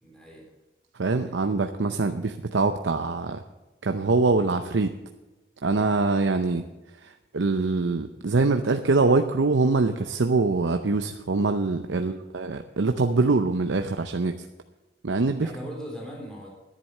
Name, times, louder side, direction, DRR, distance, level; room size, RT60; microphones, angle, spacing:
voice 1, 0.0-0.4 1.1-1.4 11.9-12.2 15.4-16.5, equal, 5° left, -2 dB, 3.5 m, -40 dB
voice 2, 1.0-3.4 3.8-4.9 5.6-6.7 7.0-14.4 15.0-15.5, right 3 dB, 85° right, 6 dB, 0.7 m, -24 dB
11.0 x 10.5 x 6.7 m, 1.1 s
head